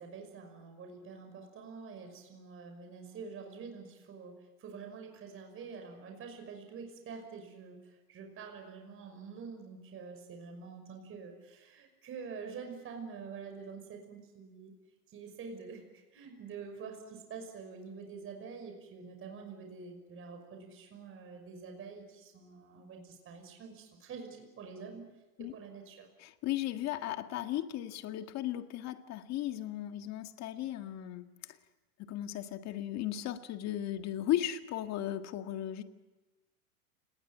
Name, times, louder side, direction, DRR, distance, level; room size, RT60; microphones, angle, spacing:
voice 1, 0.0-14.7 15.1-25.1 25.4-26.1, right 5 dB, 30° right, 4 dB, 5.8 m, -47 dB
voice 2, 26.2-31.2 32.0-35.8, left 12 dB, 35° left, 7 dB, 1.9 m, -36 dB
29.5 x 20.0 x 9.1 m, 1.2 s
supercardioid pair, 135°, 44 cm